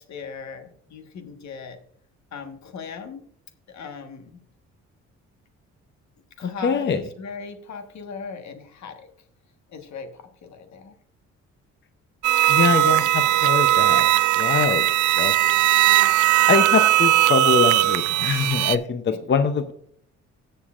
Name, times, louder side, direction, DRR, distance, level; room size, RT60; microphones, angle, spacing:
voice 1, 0.0-1.8 2.3-3.2 3.7-4.4 6.4-9.1 9.7-10.9 12.5-12.6 15.4-15.7 19.1-19.2, left 5 dB, 65° left, 7 dB, 1.4 m, -39 dB
voice 2, 6.4-7.0 12.5-14.0 14.4-14.9 15.2-15.7 16.5-19.7, left 6 dB, 40° left, 9 dB, 0.7 m, -23 dB
sound 1, 12.2-18.8, right 14 dB, 75° right, 0.5 m, -19 dB
19.0 x 6.7 x 2.4 m, 0.64 s
cardioid pair, 90°, 30 cm